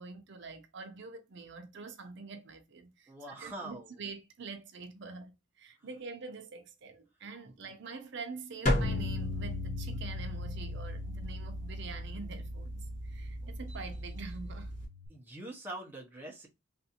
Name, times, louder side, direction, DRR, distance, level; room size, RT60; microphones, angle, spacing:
voice 1, 0.0-14.7, right 4 dB, 60° right, 0.6 m, -45 dB
voice 2, 3.1-4.0 5.8-5.9 7.4-7.5 15.1-16.5, right 1 dB, 10° right, 0.7 m, -44 dB
sound 1, 8.6-14.8, equal, 40° left, 1.6 m, -36 dB
Bass guitar, 8.8-15.1, left 6 dB, 80° left, 0.5 m, -42 dB
3.4 x 2.6 x 2.8 m
head